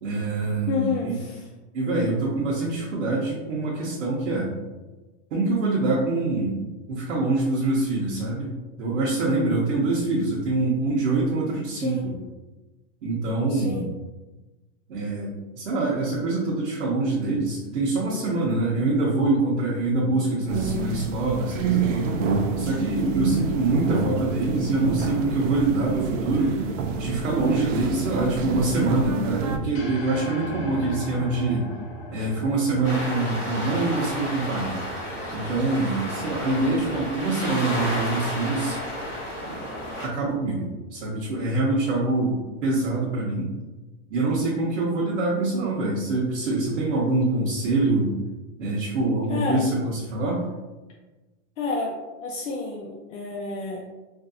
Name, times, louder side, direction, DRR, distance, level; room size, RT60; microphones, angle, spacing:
voice 1, 0.0-1.2 1.7-4.5 5.3-6.6 6.9-12.1 13.0-13.9 14.9-26.6 27.0-31.6 32.1-34.8 35.3-38.8 39.5-39.6 40.0-43.5 44.1-48.1 48.6-50.4, right 2 dB, 65° right, -5 dB, 0.8 m, -25 dB
voice 2, 0.7-1.5 11.7-12.1 13.5-13.8 36.6-36.9 49.3-49.6 51.6-53.8, left 4 dB, 80° left, -2 dB, 0.6 m, -30 dB
sound 1, 20.5-29.6, right 4 dB, 90° right, 0.6 m, -27 dB
sound 2, 29.7-34.1, equal, 55° left, 1.0 m, -37 dB
sound 3, 32.8-40.1, equal, 5° right, 0.4 m, -32 dB
3.0 x 2.6 x 2.5 m, 1.2 s
supercardioid pair, 175°, 37 cm